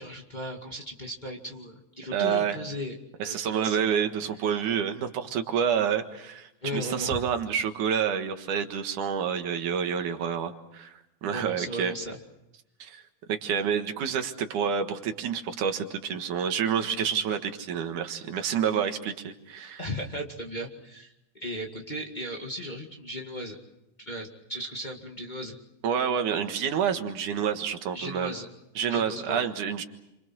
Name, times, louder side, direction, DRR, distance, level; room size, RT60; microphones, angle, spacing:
voice 1, 0.0-3.0 3.2-3.8 6.6-7.2 11.2-12.2 19.8-23.6 24.1-25.6 27.9-28.5 28.9-29.4, equal, 15° left, 0 dB, 2.0 m, -36 dB
voice 2, 2.1-2.6 3.2-10.9 11.2-11.9 12.8-13.0 13.3-19.8 25.8-28.3 28.8-29.8, right 7 dB, 90° right, 6 dB, 3.1 m, -28 dB
28.0 x 26.0 x 6.3 m, 0.88 s
omnidirectional pair, 3.5 m